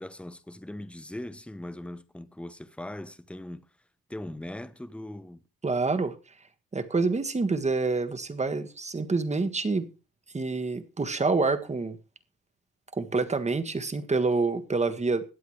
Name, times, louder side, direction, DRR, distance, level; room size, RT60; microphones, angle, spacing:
voice 1, 0.0-3.7 4.1-5.4, left 1 dB, 5° left, 0.9 m, -40 dB
voice 2, 5.6-6.1 6.7-9.9 10.3-12.0 12.9-15.3, right 3 dB, 20° right, 1.6 m, -27 dB
21.5 x 8.2 x 3.2 m
cardioid pair, 90°, 30 cm